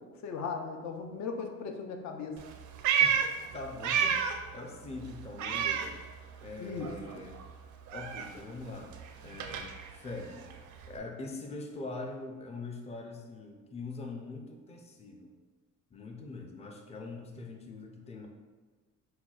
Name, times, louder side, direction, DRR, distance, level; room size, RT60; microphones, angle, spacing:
voice 1, 0.2-2.4 6.6-6.9 7.1-7.2, left 5 dB, 65° left, 4 dB, 0.6 m, -37 dB
Meow, 2.4-4.5 4.8-6.5 6.8-11.0, right 7 dB, 70° right, 0.5 m, -32 dB
voice 2, 3.0-6.0 6.4-7.4 7.9-8.9 9.2-10.5 10.9-15.3 15.9-18.3, left 3 dB, 20° left, 2 dB, 0.4 m, -43 dB
5.7 x 2.3 x 2.3 m, 1.3 s
cardioid pair, 90°, 30 cm